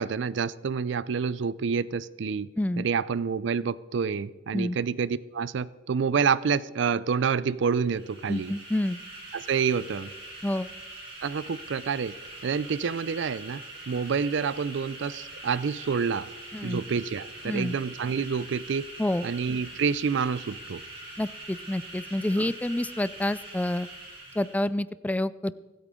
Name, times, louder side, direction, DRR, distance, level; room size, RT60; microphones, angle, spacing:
voice 1, 0.0-2.5 2.8-8.5 9.3-10.1 11.2-12.2 12.4-16.3 16.6-18.9 19.2-20.8 22.4-22.5, right 6 dB, 65° right, 18 dB, 0.4 m, -28 dB
voice 2, 2.6-2.9 4.5-4.8 8.3-9.0 10.4-10.7 16.5-16.8 17.5-17.8 19.0-19.3 21.2-23.9 24.4-25.5, left 1 dB, 10° left, 17 dB, 0.3 m, -28 dB
sound 1, 7.8-24.7, right 2 dB, 30° right, 3.8 m, -43 dB
24.0 x 8.8 x 3.7 m, 1.3 s
head